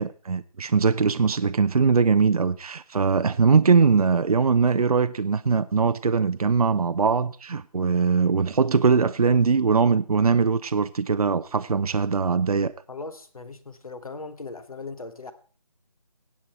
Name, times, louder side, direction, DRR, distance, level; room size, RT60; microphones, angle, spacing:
voice 1, 0.0-12.7, right 5 dB, 70° right, 0.5 m, -21 dB
voice 2, 12.9-15.3, left 3 dB, 65° left, 1.4 m, -38 dB
16.5 x 8.5 x 4.4 m
figure-of-eight pair, 180°, 20 cm